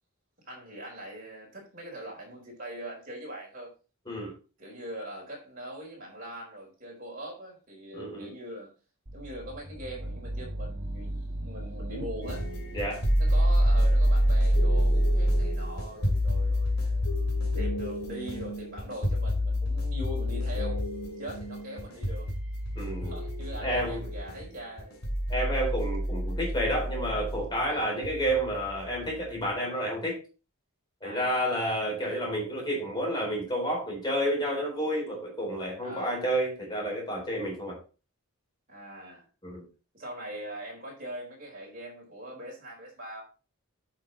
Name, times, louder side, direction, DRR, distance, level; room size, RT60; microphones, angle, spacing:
voice 1, 0.4-3.7 4.6-8.7 9.1-12.5 13.2-17.1 17.6-20.9 21.2-22.3 23.0-25.0 27.6-28.0 31.0-31.5 35.8-36.2 38.7-39.3 39.9-43.2, right 1 dB, 40° right, 4.1 m, -42 dB
voice 2, 7.9-8.3 12.7-13.0 22.8-23.2 23.6-24.0 25.3-30.2 31.0-37.8 39.4-39.6, equal, 20° left, 3.9 m, -30 dB
sound 1, 9.1-18.9, right 1 dB, 90° right, 1.7 m, -41 dB
sound 2, 12.2-29.4, equal, 80° left, 2.4 m, -27 dB
8.8 x 5.9 x 4.0 m
head